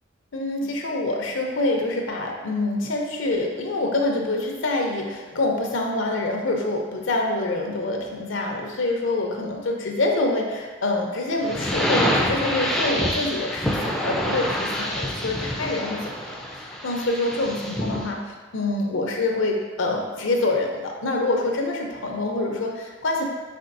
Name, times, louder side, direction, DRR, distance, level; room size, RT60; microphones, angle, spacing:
voice 1, 0.3-23.2, left 2 dB, 80° left, 1 dB, 0.6 m, -26 dB
sound 1, 11.4-18.1, equal, ahead, 0.3 m, -26 dB
4.3 x 4.1 x 2.5 m, 1.3 s
head